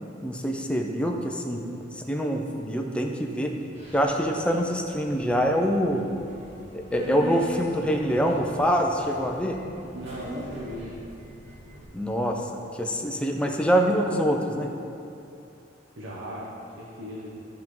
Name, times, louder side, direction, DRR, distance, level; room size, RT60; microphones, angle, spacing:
voice 1, 0.2-1.7 1.9-3.6 3.9-6.1 6.7-9.6 11.9-14.7, equal, 5° left, 1 dB, 0.6 m, -25 dB
Subway metro underground, 3.7-11.8, right 1 dB, 35° right, 1.7 m, -42 dB
voice 2, 9.9-11.1 16.0-17.4, equal, 90° right, -6 dB, 1.1 m, -37 dB
13.0 x 4.5 x 3.8 m, 2.7 s
head